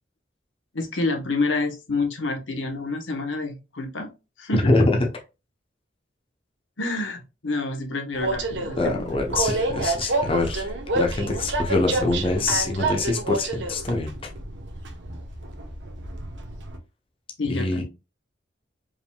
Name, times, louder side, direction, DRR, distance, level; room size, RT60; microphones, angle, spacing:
voice 1, 0.7-4.1 4.4-4.8 6.8-9.1 17.4-17.8, left 3 dB, 85° left, 1.0 m, -28 dB
voice 2, 4.5-5.1 8.8-14.3 17.5-17.8, left 2 dB, 30° left, 0.7 m, -24 dB
Train, 8.1-16.8, right 2 dB, 75° right, 0.9 m, -28 dB
4.8 x 3.6 x 2.2 m
head